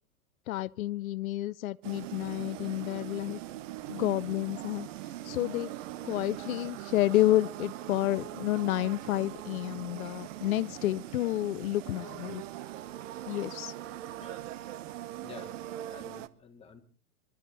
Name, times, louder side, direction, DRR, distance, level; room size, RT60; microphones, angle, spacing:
voice 1, 0.5-3.4 3.9-4.9 5.2-5.7 6.0-12.4 13.3-13.7, left 15 dB, 70° left, 0.8 m, -30 dB
sound 1, 1.8-16.3, right 13 dB, 55° right, 1.2 m, -41 dB
voice 2, 15.1-15.6 15.9-16.8, left 6 dB, 15° left, 3.3 m, -50 dB
27.5 x 13.0 x 4.0 m
hypercardioid pair, 120°, 44 cm